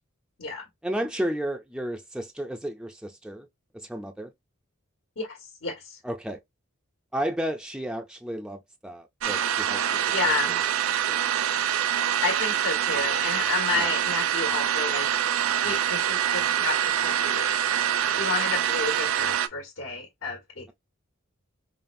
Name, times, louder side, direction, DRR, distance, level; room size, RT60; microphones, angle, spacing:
voice 1, 0.8-3.5 3.7-4.3 6.0-6.4 7.1-9.8 10.2-10.3 11.0-11.2 11.5-11.6 13.7-13.9, right 1 dB, 5° right, 0.3 m, -32 dB
voice 2, 5.2-6.0 10.1-10.6 12.2-15.1 15.6-17.5 18.2-20.7, left 4 dB, 85° left, 1.5 m, -31 dB
sound 1, 9.2-19.5, right 10 dB, 85° right, 0.4 m, -25 dB
5.2 x 2.2 x 2.5 m
head